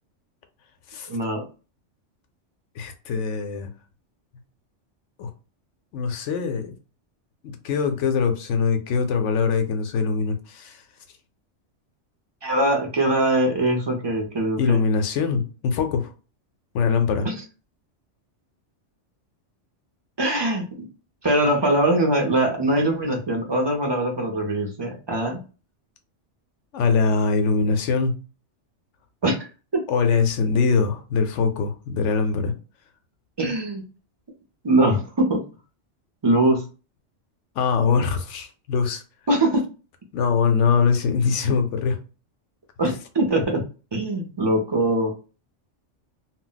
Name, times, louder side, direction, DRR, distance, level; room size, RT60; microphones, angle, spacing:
voice 1, 1.1-1.4 12.4-14.8 17.2-17.3 20.2-20.7 21.2-25.4 29.2-29.5 29.7-29.8 33.4-33.8 34.6-35.4 36.2-36.7 39.3-39.6 42.8-43.6 43.9-45.1, right 1 dB, 40° right, 0.4 m, -22 dB
voice 2, 2.8-3.7 5.2-5.3 5.9-6.7 7.4-10.8 14.6-16.1 16.7-17.3 26.7-28.2 29.9-32.5 37.6-39.0 40.1-42.0, left 5 dB, 80° left, 0.9 m, -22 dB
2.2 x 2.0 x 3.8 m
omnidirectional pair, 1.2 m